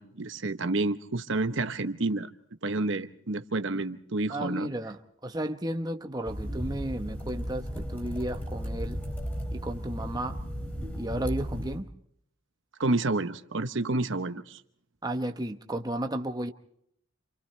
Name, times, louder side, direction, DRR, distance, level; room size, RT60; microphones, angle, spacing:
voice 1, 0.0-2.3 2.6-4.7 12.8-14.6, right 2 dB, 60° right, 1.0 m, -29 dB
voice 2, 4.3-9.0 9.5-10.4 11.0-11.9 15.0-16.5, right 1 dB, 20° right, 1.0 m, -33 dB
sound 1, 6.2-11.8, equal, 10° left, 3.6 m, -35 dB
28.5 x 28.0 x 3.3 m
head